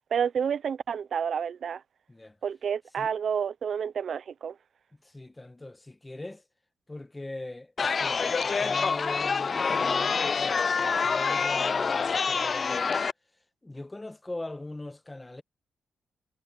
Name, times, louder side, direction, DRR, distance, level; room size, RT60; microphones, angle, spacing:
voice 1, 0.1-1.8 2.4-4.5, right 7 dB, 60° right, 0.6 m, -29 dB
voice 2, 5.0-6.4 6.9-13.1 13.6-15.4, left 2 dB, 15° left, 1.4 m, -41 dB
Chatter, 7.8-13.1, left 5 dB, 45° left, 0.4 m, -26 dB
cardioid pair, 90°, 0 cm